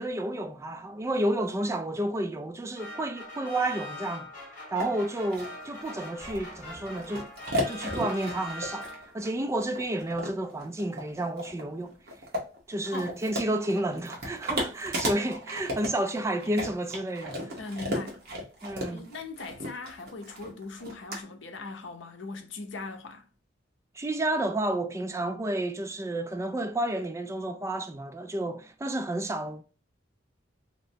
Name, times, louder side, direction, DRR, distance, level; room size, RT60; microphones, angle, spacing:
voice 1, 0.0-4.3 4.7-7.3 7.7-11.9 12.7-17.6 18.6-19.1 23.9-29.6, right 1 dB, 15° right, 0.3 m, -31 dB
sound 1, 2.8-9.3, left 2 dB, 45° left, 1.7 m, -42 dB
sound 2, 4.8-4.9 5.3-21.2, equal, 55° right, 1.1 m, -35 dB
voice 2, 17.6-18.2 18.9-23.2, left 3 dB, 70° left, 0.7 m, -39 dB
3.1 x 2.9 x 2.7 m
head